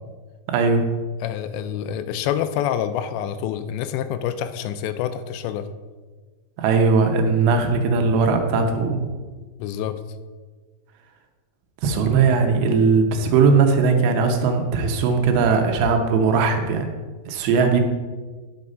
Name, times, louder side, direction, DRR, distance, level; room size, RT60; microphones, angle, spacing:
voice 1, 0.5-0.8 6.6-9.1 11.8-16.9 17.3-17.8, right 5 dB, 75° right, 5 dB, 3.0 m, -19 dB
voice 2, 1.2-5.7 9.6-10.0, left 10 dB, 85° left, 11 dB, 2.7 m, -27 dB
10.0 x 6.4 x 5.4 m, 1.4 s
omnidirectional pair, 5.3 m